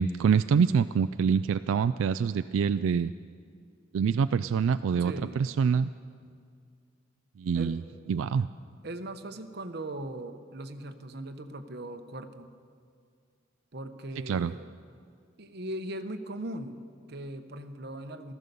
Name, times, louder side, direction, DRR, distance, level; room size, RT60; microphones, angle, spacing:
voice 1, 0.0-3.1 3.9-5.9 7.4-7.8 8.1-8.5 14.3-14.5, right 6 dB, 85° right, 12 dB, 0.3 m, -25 dB
voice 2, 5.0-5.5 7.5-7.8 8.8-12.5 13.7-14.7 15.4-18.3, right 1 dB, 55° right, 7 dB, 0.9 m, -39 dB
15.0 x 14.0 x 6.8 m, 2.1 s
head